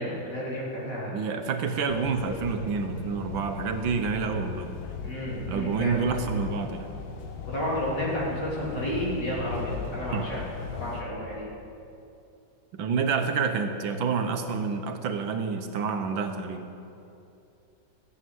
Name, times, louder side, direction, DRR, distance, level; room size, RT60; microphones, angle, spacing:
voice 1, 0.0-1.2 5.0-6.0 7.5-10.4 10.7-11.5, equal, 65° left, -6 dB, 4.1 m, -31 dB
voice 2, 1.1-4.7 5.5-6.9 10.1-10.3 12.7-16.7, right 5 dB, 85° right, 6 dB, 1.8 m, -28 dB
sound 1, 1.9-11.0, left 7 dB, 85° left, 1.8 m, -38 dB
14.0 x 7.5 x 9.3 m, 2.7 s
omnidirectional pair, 2.1 m